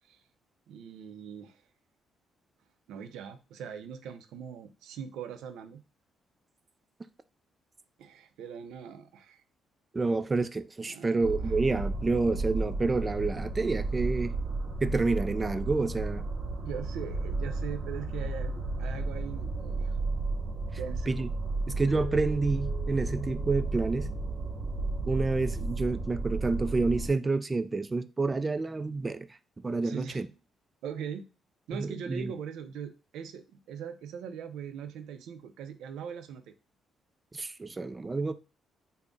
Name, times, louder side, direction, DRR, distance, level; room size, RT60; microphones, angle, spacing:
voice 1, 0.7-1.6 2.9-5.8 8.0-9.4 10.8-11.5 16.6-20.0 20.8-21.1 29.8-30.2 30.8-31.2 31.7-36.5, right 7 dB, 85° right, 0.5 m, -41 dB
voice 2, 9.9-14.4 14.8-16.2 21.1-21.3 21.7-24.1 25.1-29.3 29.6-30.3 31.8-32.3 37.3-38.3, right 3 dB, 25° right, 0.3 m, -29 dB
sound 1, 11.2-27.1, right 3 dB, 65° right, 0.8 m, -33 dB
Mallet percussion, 21.9-24.8, left 5 dB, 85° left, 0.6 m, -46 dB
3.5 x 2.1 x 3.8 m
cardioid pair, 90°, 0 cm